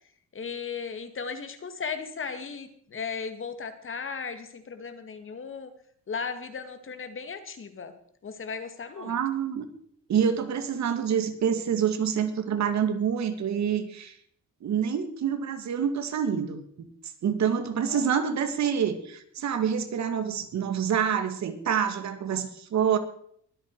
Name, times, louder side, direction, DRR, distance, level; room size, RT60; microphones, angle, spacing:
voice 1, 0.3-5.7 6.1-7.9 8.2-9.2 17.8-18.0, left 5 dB, 45° left, 9 dB, 2.1 m, -36 dB
voice 2, 9.0-9.7 10.1-14.1 14.6-16.6 17.2-23.0, right 8 dB, 65° right, 8 dB, 2.1 m, -27 dB
22.0 x 8.4 x 4.8 m, 0.63 s
cardioid pair, 90°, 30 cm